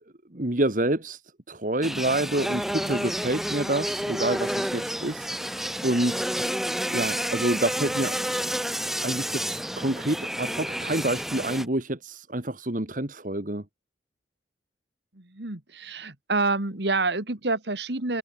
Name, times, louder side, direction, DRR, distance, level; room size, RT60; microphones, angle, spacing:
voice 1, 0.3-1.2 1.5-5.3 5.8-6.3 6.9-8.1 9.0-13.6, right 1 dB, 45° right, 2.0 m, -27 dB
sound 1, 1.8-11.7, equal, ahead, 5.1 m, -30 dB
voice 2, 15.1-18.2, right 3 dB, 70° right, 2.3 m, -28 dB
head